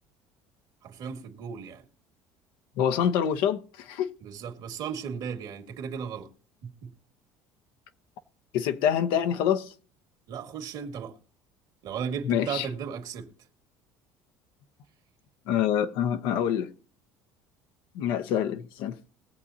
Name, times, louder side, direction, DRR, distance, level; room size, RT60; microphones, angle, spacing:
voice 1, 0.8-1.8 4.2-6.3 6.6-6.9 10.3-11.1 11.8-13.3, right 7 dB, 60° right, 2.0 m, -35 dB
voice 2, 2.8-4.1 8.5-9.7 12.2-12.7 15.5-16.7 17.9-19.0, left 9 dB, 75° left, 0.8 m, -26 dB
20.5 x 7.2 x 2.8 m
supercardioid pair, 100°, 8 cm